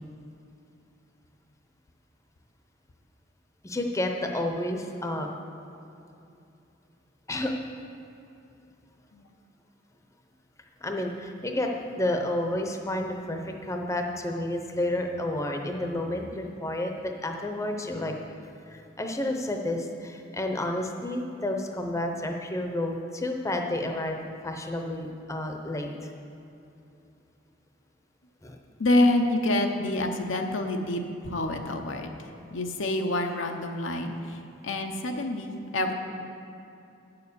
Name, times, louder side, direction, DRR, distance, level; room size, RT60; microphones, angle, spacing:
voice 1, 3.6-5.3 7.3-7.5 10.8-11.7 12.0-18.1 18.4-24.2 24.4-26.1 28.4-28.6, left 1 dB, 15° left, 3 dB, 0.7 m, -30 dB
voice 2, 28.8-32.1 32.5-34.4 34.6-35.9, left 1 dB, 85° left, 4 dB, 0.9 m, -27 dB
8.9 x 6.9 x 6.9 m, 2.7 s
head